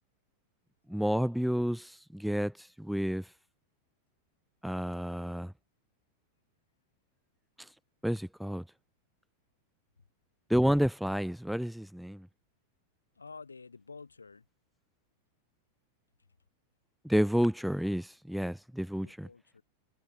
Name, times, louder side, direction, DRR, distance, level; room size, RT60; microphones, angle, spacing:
voice 1, 0.9-3.3 4.6-5.5 8.0-8.6 10.5-12.3 17.0-19.3, equal, ahead, 0.3 m, -30 dB
voice 2, 13.2-14.5 18.9-19.6, left 4 dB, 75° left, 7.3 m, -49 dB
figure-of-eight pair, 90°, 0 cm